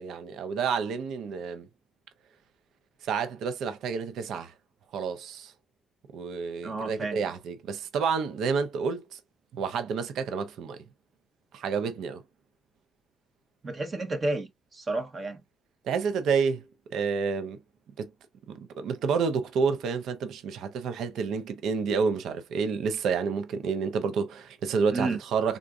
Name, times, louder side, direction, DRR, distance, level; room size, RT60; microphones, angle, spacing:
voice 1, 0.0-1.7 3.0-4.5 4.9-5.5 6.1-9.2 9.5-10.8 11.5-12.2 15.8-16.6 16.9-17.6 18.0-18.1 18.5-25.6, right 5 dB, 80° right, 0.6 m, -29 dB
voice 2, 6.6-7.2 13.6-15.4 24.9-25.2, right 2 dB, 35° right, 0.9 m, -31 dB
3.7 x 2.5 x 2.3 m
cardioid pair, 90°, 0 cm